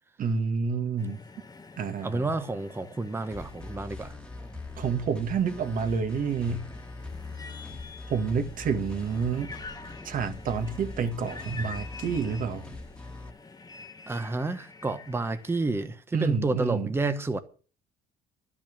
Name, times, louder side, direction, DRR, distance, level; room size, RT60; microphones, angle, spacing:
voice 1, 0.2-1.2 1.8-2.3 4.8-6.7 8.1-9.5 10.0-12.6 16.1-16.9, right 5 dB, 55° right, 1.8 m, -29 dB
sound 1, 1.0-15.9, left 3 dB, 20° left, 1.5 m, -47 dB
voice 2, 2.0-4.1 14.1-17.4, right 2 dB, 15° right, 1.0 m, -30 dB
sound 2, 3.3-13.3, left 2 dB, 5° left, 1.7 m, -42 dB
12.5 x 6.0 x 8.6 m
cardioid pair, 110°, 17 cm